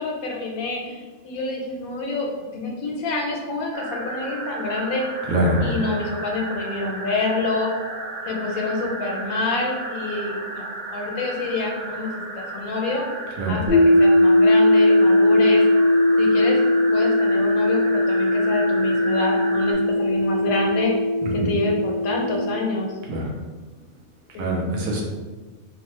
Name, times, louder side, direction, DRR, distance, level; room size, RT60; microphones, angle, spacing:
voice 1, 0.0-5.0 5.6-7.7 8.3-13.0 13.5-15.6 16.2-16.6 16.9-20.9 21.4-22.9 24.3-24.6, left 2 dB, 90° left, 1 dB, 1.0 m, -27 dB
sound 1, 3.7-19.7, right 2 dB, 55° right, 0.8 m, -34 dB
voice 2, 5.3-5.6 13.4-13.6 21.4-21.5 23.1-23.3 24.4-25.0, right 1 dB, 75° right, -1 dB, 1.1 m, -23 dB
sound 2, 13.7-22.5, left 1 dB, 35° right, 0.3 m, -19 dB
3.0 x 2.1 x 3.0 m, 1.4 s
omnidirectional pair, 1.5 m